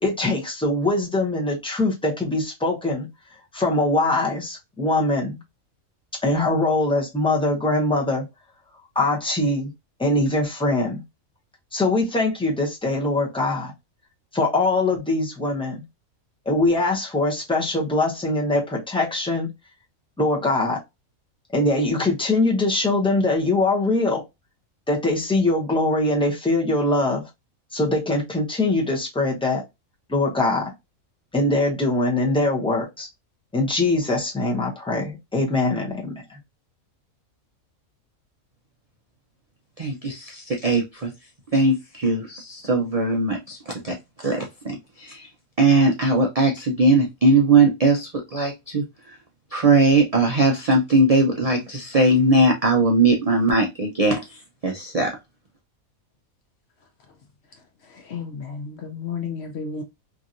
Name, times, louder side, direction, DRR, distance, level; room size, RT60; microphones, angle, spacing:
voice 1, 0.0-3.1 3.5-5.4 6.2-8.2 8.9-9.7 10.0-11.0 11.7-13.7 14.3-15.8 16.5-19.5 20.2-20.8 21.5-24.2 24.9-27.3 27.7-29.6 30.1-30.7 31.3-33.1 33.5-36.4, left 2 dB, 5° left, 0.5 m, -22 dB
voice 2, 39.8-41.1 41.5-43.9 44.2-45.3 45.6-48.8 49.5-55.2, right 2 dB, 75° right, 0.3 m, -20 dB
voice 3, 57.9-59.8, left 5 dB, 60° left, 0.7 m, -32 dB
2.9 x 2.7 x 2.5 m
omnidirectional pair, 1.5 m